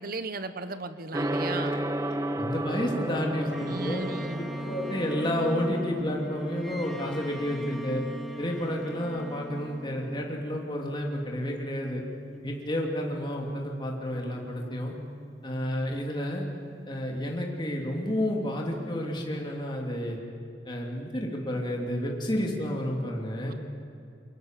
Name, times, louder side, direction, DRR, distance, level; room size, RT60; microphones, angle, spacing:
voice 1, 0.0-1.8 3.7-4.4 23.5-23.6, right 3 dB, 55° right, 11 dB, 1.1 m, -36 dB
Gong, 1.1-20.1, right 1 dB, 20° right, 1.0 m, -37 dB
voice 2, 2.3-4.0 4.6-8.0 8.4-12.0 12.4-14.9 15.4-16.5 16.8-20.2 20.6-23.5, left 1 dB, 25° left, -1 dB, 2.9 m, -30 dB
Bowed string instrument, 3.5-10.8, right 1 dB, ahead, 1.6 m, -42 dB
27.0 x 24.0 x 7.6 m, 2.5 s
head